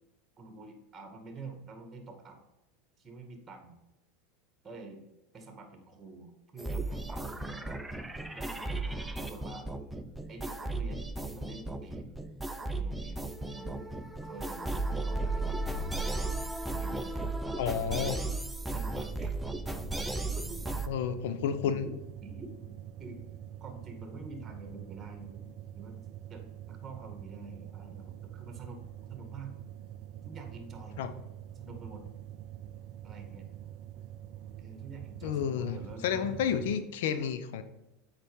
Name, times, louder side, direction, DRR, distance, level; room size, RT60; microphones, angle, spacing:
voice 1, 0.4-2.4 3.0-3.8 4.6-5.0 5.3-7.7 8.3-9.7 10.3-12.1 12.8-13.8 14.2-14.8 15.1-16.3 16.8-17.3 18.7-19.3 20.3-20.8 21.6-21.9 22.2-22.7 23.0-23.2 23.6-26.0 26.3-28.8 29.1-29.6 30.2-31.0 31.6-32.1 33.0-33.4 34.6-36.8, right 3 dB, 25° right, 4 dB, 2.2 m, -47 dB
sound 1, 6.6-20.9, right 2 dB, 5° right, 0.7 m, -35 dB
voice 2, 17.5-18.2 20.9-21.9 31.0-31.1 35.2-35.8 36.0-37.6, left 8 dB, 75° left, 10 dB, 0.8 m, -31 dB
sound 2, 18.9-36.7, right 11 dB, 55° right, 0.4 m, -45 dB
7.5 x 5.2 x 5.5 m, 0.95 s
hypercardioid pair, 100°, 0 cm